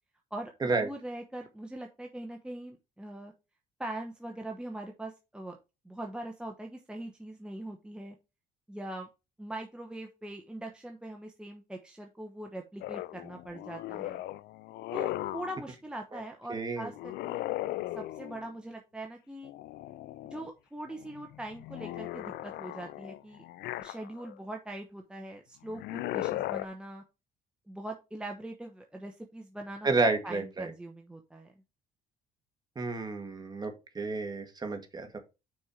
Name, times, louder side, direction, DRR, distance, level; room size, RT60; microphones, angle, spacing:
voice 1, 0.3-3.3 3.8-5.6 5.8-8.1 8.7-9.1 9.4-14.2 14.9-17.4 17.9-19.5 20.3-23.4 23.8-27.0 27.7-29.9 30.2-31.5, right 1 dB, 5° right, 2 dB, 1.0 m, -42 dB
sound 1, 12.8-15.6 16.9-18.5 19.4-20.5 20.9-24.4 25.7-26.7, left 16 dB, 75° left, 0.4 m, -37 dB
voice 2, 16.5-16.9 29.8-30.7 32.7-35.2, right 3 dB, 25° right, 5 dB, 1.7 m, -30 dB
6.3 x 4.4 x 4.9 m, 0.27 s
cardioid pair, 110°, 17 cm